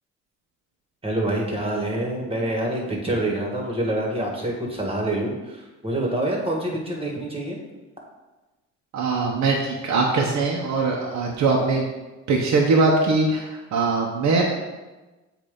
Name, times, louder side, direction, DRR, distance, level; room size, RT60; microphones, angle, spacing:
voice 1, 1.0-7.6, right 1 dB, 20° right, -1 dB, 1.6 m, -26 dB
voice 2, 8.9-11.9 12.3-14.4, right 3 dB, 65° right, -1 dB, 0.9 m, -21 dB
7.6 x 2.7 x 5.1 m, 1.1 s
cardioid pair, 90°, 30 cm